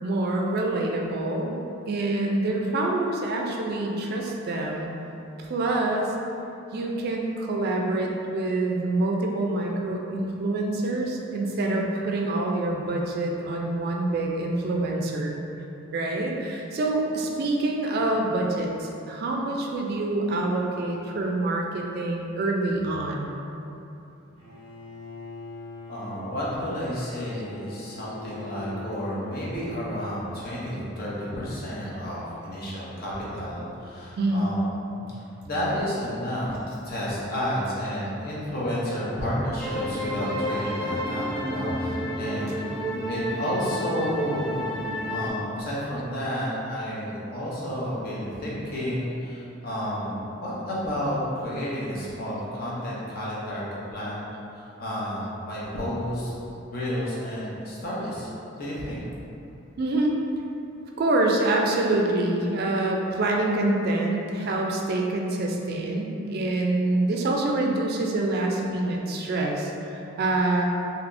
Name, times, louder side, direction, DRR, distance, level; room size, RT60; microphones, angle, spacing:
voice 1, 0.0-1.6 1.9-4.9 5.4-6.1 6.7-15.4 15.9-23.4 34.2-34.5 59.8-60.2 61.0-70.6, right 2 dB, 50° right, 0 dB, 0.3 m, -26 dB
Bowed string instrument, 24.4-30.5, left 3 dB, 65° left, 1.1 m, -44 dB
voice 2, 25.9-42.6 43.0-44.6 45.1-53.6 53.9-54.3 54.5-56.3 56.7-58.3 58.6-59.0, equal, 50° left, -7 dB, 0.8 m, -31 dB
sound 1, 39.6-45.3, equal, ahead, 1.1 m, -30 dB
3.3 x 2.8 x 2.5 m, 2.8 s
head